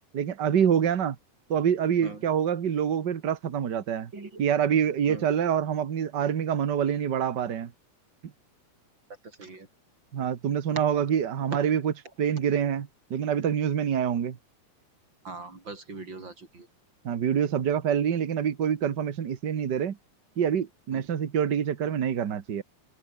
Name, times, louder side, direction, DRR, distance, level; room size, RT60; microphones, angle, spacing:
voice 1, 0.1-1.1 1.5-4.1 4.4-7.7 10.1-11.9 12.2-14.4 17.0-20.0 20.4-22.6, right 8 dB, 65° right, 1.0 m, -26 dB
voice 2, 15.2-16.7 20.9-21.0, right 3 dB, 30° right, 5.3 m, -40 dB
omnidirectional pair, 4.2 m